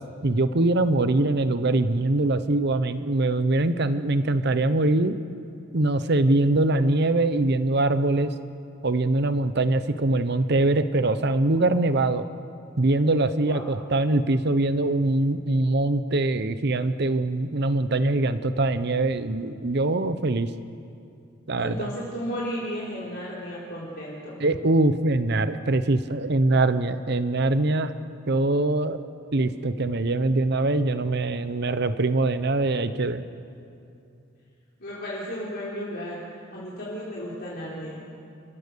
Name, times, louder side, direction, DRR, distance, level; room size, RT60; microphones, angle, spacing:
voice 1, 0.2-5.1 5.7-8.3 8.8-12.2 12.8-20.5 21.5-21.9 24.4-27.9 28.3-29.0 29.3-33.2, right 2 dB, 55° right, 12 dB, 0.8 m, -23 dB
voice 2, 21.6-24.4 34.8-36.2 36.5-38.0, equal, 50° left, -7 dB, 4.2 m, -34 dB
29.5 x 16.0 x 6.8 m, 2.6 s
head